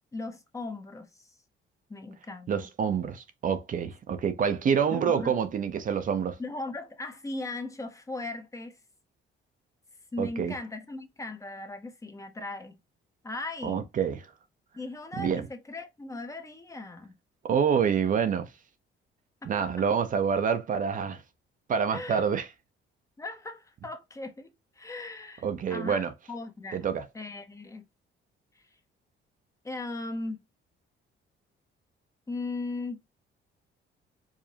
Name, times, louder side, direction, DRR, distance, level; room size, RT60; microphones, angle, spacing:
voice 1, 0.1-1.1 1.9-2.7 4.9-5.3 6.4-8.8 10.1-12.8 13.2-13.9 14.7-17.1 19.4-19.7 21.9-22.2 23.2-26.8 27.1-27.8 28.6-28.7 29.6-30.4 32.3-33.0, left 2 dB, 15° left, 0.6 m, -38 dB
voice 2, 2.5-6.4 10.2-10.5 13.6-14.3 15.2-15.5 17.4-18.5 19.5-21.2 21.7-22.5 25.4-26.1 26.7-27.1, right 7 dB, 40° right, 0.5 m, -27 dB
4.8 x 2.6 x 2.7 m
cardioid pair, 150°, 21 cm